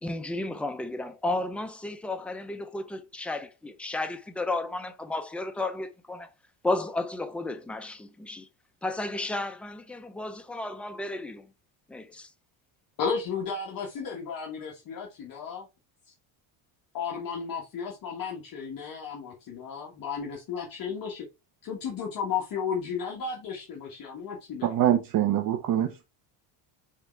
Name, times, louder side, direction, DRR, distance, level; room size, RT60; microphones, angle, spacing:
voice 1, 0.0-6.3 6.6-8.5 8.8-11.5 11.9-12.3, left 2 dB, 5° left, 0.5 m, -33 dB
voice 2, 13.0-15.7 16.9-21.3 21.6-24.7, left 6 dB, 45° left, 1.6 m, -34 dB
voice 3, 24.6-26.0, right 11 dB, 45° right, 0.9 m, -24 dB
8.2 x 3.6 x 3.3 m
cardioid pair, 145°, 48 cm